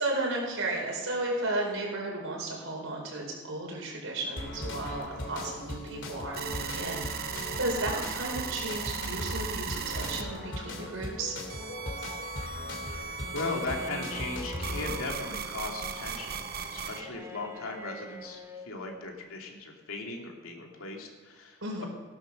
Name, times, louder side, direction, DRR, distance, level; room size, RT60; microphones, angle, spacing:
voice 1, 0.0-11.3 21.6-21.9, right 2 dB, 70° right, -2 dB, 4.6 m, -34 dB
sound 1, 4.4-15.0, left 1 dB, 55° left, 2.9 m, -38 dB
sound 2, 6.3-10.2 11.5-17.0, right 6 dB, 45° right, 0.8 m, -38 dB
Bowed string instrument, 13.2-18.7, equal, 15° right, 1.4 m, -44 dB
voice 2, 13.3-16.4 16.7-21.8, left 3 dB, 75° left, 1 dB, 2.7 m, -38 dB
18.0 x 11.0 x 6.4 m, 1.4 s
head